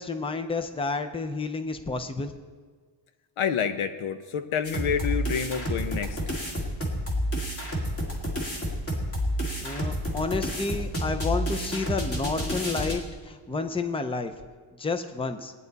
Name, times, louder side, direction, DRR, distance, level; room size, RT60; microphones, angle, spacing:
voice 1, 0.0-2.3 9.6-14.3 14.8-15.5, left 3 dB, 10° left, 8 dB, 0.5 m, -30 dB
voice 2, 3.4-6.2, left 7 dB, 80° left, 9 dB, 1.0 m, -28 dB
sound 1, 4.6-12.9, equal, 30° left, 2.1 m, -30 dB
19.5 x 9.6 x 4.0 m, 1.5 s
wide cardioid pair, 170°, 48 cm